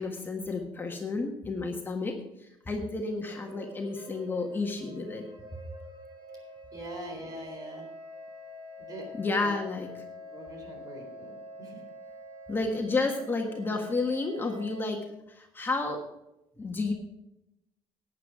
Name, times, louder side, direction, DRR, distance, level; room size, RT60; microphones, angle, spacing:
voice 1, 0.0-2.1 2.7-5.2 9.2-10.0 12.5-15.0 15.3-16.0 16.6-16.9, left 3 dB, 20° left, 2 dB, 1.5 m, -31 dB
sound 1, 3.2-14.8, equal, 65° right, 4.0 m, -46 dB
voice 2, 6.7-7.9 8.8-9.6 10.3-11.3 11.6-11.8, equal, 40° right, 3 dB, 4.1 m, -42 dB
12.0 x 9.4 x 4.9 m, 0.86 s
cardioid pair, 125°, 10 cm